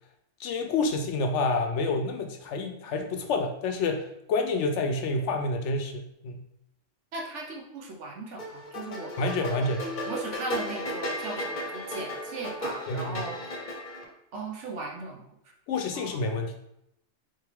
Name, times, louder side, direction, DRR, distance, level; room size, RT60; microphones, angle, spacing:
voice 1, 0.4-6.4 9.2-9.9 12.9-13.2 15.7-16.6, left 3 dB, 70° left, 5 dB, 0.9 m, -28 dB
voice 2, 7.1-9.5 10.1-13.4 14.3-15.3 15.9-16.2, right 3 dB, 70° right, 1 dB, 1.1 m, -38 dB
sound 1, 8.4-14.0, equal, 45° left, 0.8 m, -35 dB
3.7 x 3.3 x 3.4 m, 0.79 s
omnidirectional pair, 1.3 m